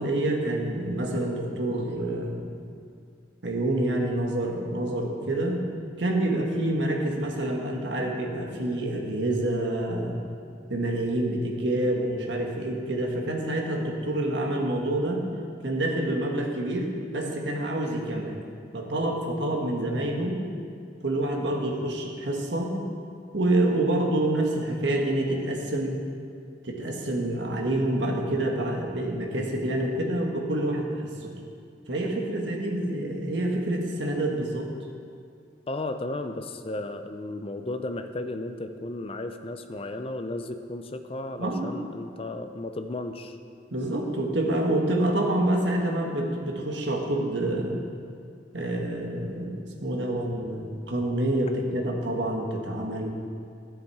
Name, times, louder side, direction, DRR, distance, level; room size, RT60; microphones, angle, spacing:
voice 1, 0.0-2.6 3.4-5.6 6.0-10.2 10.7-15.3 15.6-18.4 18.7-20.5 21.0-22.8 23.3-26.0 26.6-31.3 31.9-34.7 41.4-41.7 43.7-47.8 48.5-53.1, right 1 dB, 75° right, 0 dB, 1.6 m, -27 dB
voice 2, 35.7-43.4, left 2 dB, 30° left, 7 dB, 0.5 m, -34 dB
12.0 x 7.9 x 4.8 m, 2.3 s
head